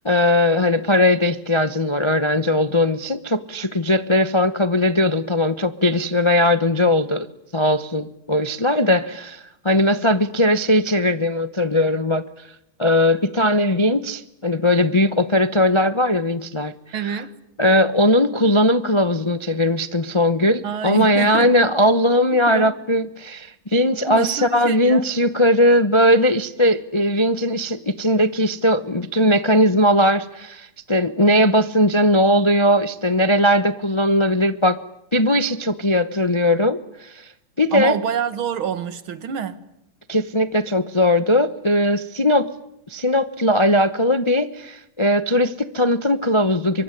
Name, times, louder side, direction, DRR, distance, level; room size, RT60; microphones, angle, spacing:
voice 1, 0.0-7.3 7.5-12.2 12.8-16.7 17.1-17.2 17.6-34.8 35.1-37.3 37.6-37.9 40.1-42.5 42.9-46.8, left 1 dB, 35° left, 0.4 m, -19 dB
voice 2, 16.9-17.4 20.6-21.5 22.5-22.8 24.1-25.0 37.7-39.6, right 7 dB, 70° right, 2.4 m, -26 dB
25.0 x 23.5 x 9.9 m
omnidirectional pair, 2.4 m